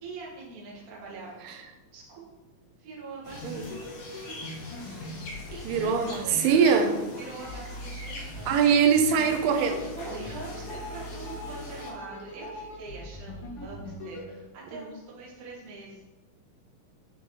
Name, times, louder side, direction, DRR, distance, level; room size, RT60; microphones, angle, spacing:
voice 1, 0.0-1.6 1.9-2.2 2.8-3.9 5.2-6.0 6.2-6.9 7.2-8.6 10.0-16.1, right 3 dB, 60° right, -5 dB, 0.9 m, -43 dB
sound 1, 3.2-11.9, left 2 dB, 70° left, 1.3 m, -44 dB
sound 2, 3.2-7.5 8.2-14.3, left 2 dB, 55° left, 1.8 m, -42 dB
voice 2, 5.7-6.9 8.5-9.9 14.7-14.9, right 6 dB, 90° right, 5 dB, 2.4 m, -23 dB
sound 3, 7.5-13.8, left 1 dB, 85° left, 2.5 m, -45 dB
8.5 x 2.9 x 3.8 m, 1.2 s
omnidirectional pair, 4.1 m